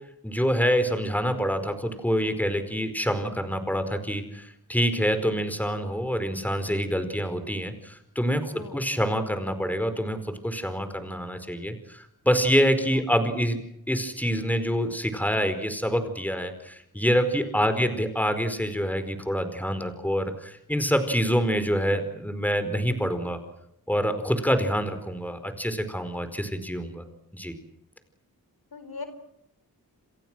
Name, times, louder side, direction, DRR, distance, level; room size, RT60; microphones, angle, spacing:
voice 1, 0.2-13.6 13.9-23.4 23.9-27.0 27.3-27.5, equal, 5° left, 9 dB, 4.7 m, -26 dB
voice 2, 8.5-8.9 12.9-13.0 17.6-17.8 28.7-29.0, left 4 dB, 85° left, 9 dB, 4.7 m, -40 dB
29.5 x 26.0 x 6.3 m, 0.79 s
wide cardioid pair, 85°, 36 cm